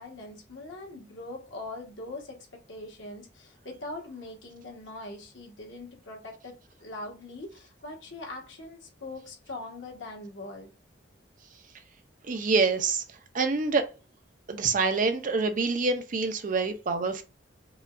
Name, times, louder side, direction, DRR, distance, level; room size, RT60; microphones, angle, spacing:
voice 1, 0.0-10.7, left 2 dB, 90° left, 1.3 m, -42 dB
voice 2, 12.3-13.0 13.3-13.9 14.5-17.2, right 4 dB, 45° right, 0.5 m, -26 dB
4.8 x 2.3 x 2.5 m
head